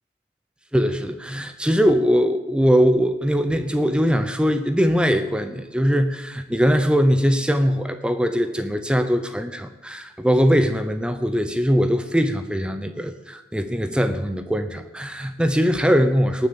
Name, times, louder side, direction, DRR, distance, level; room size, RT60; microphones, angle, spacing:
voice 1, 0.7-16.5, equal, 5° right, 8 dB, 0.7 m, -21 dB
19.0 x 6.5 x 8.5 m, 1.1 s
head